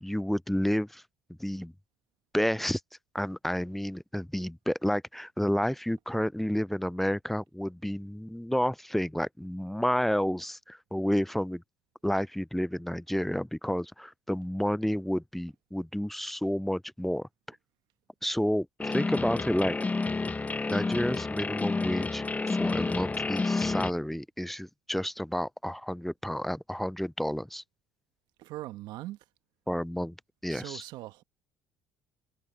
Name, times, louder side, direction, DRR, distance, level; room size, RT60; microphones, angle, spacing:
voice 1, 0.0-1.0 1.4-1.7 2.3-2.8 3.1-11.6 12.0-17.3 18.2-19.8 20.7-27.6 29.7-30.2 30.4-30.8, equal, ahead, 0.3 m, -30 dB
sound 1, 18.8-23.9, left 3 dB, 20° left, 0.7 m, -30 dB
voice 2, 28.4-29.2 30.5-31.2, right 16 dB, 70° right, 1.2 m, -41 dB
supercardioid pair, 70°, 8 cm